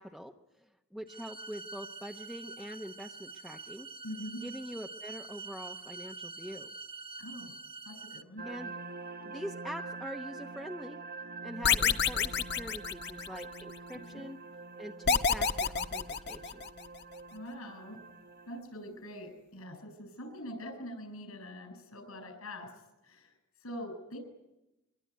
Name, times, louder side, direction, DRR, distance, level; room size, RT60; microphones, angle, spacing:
voice 1, 0.0-3.9 4.4-6.7 8.5-8.7 9.2-11.0 11.4-14.4 14.8-16.7, equal, ahead, 1 dB, 1.0 m, -44 dB
sound 1, 1.1-8.2, right 4 dB, 25° right, 0.9 m, -46 dB
voice 2, 4.0-4.5 7.2-7.5 7.8-8.5 13.9-14.2 17.3-18.0 18.5-22.7 23.0-23.3 23.6-24.2, equal, 75° left, 8 dB, 7.8 m, -44 dB
sound 2, 8.4-18.6, right 3 dB, 45° right, 1.1 m, -45 dB
sound 3, 11.6-13.6 15.1-16.9, left 6 dB, 50° left, 1.3 m, -28 dB
25.0 x 23.5 x 9.4 m, 0.93 s
head